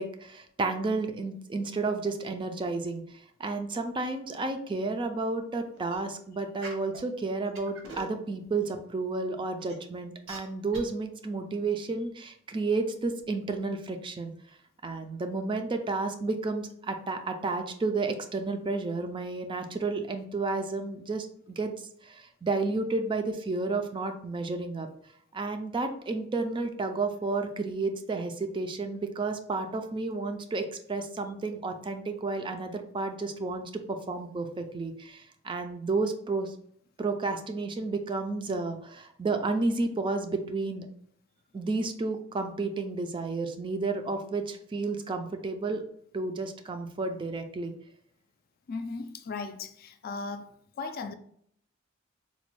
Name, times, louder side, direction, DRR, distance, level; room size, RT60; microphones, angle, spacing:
voice 1, 0.0-14.3 14.8-21.7 22.0-24.9 25.3-36.6 37.0-40.9 41.5-45.8 46.1-47.7, right 3 dB, 25° right, 0.3 m, -31 dB
sound 1, 5.8-6.0 6.6-7.0 7.5-8.2 8.7-8.8 9.6-9.7 10.3-10.4 10.7-10.8, right 2 dB, 80° right, 0.9 m, -41 dB
voice 2, 48.7-50.5 50.8-51.1, left 4 dB, 50° left, 0.3 m, -37 dB
4.1 x 2.2 x 3.0 m
head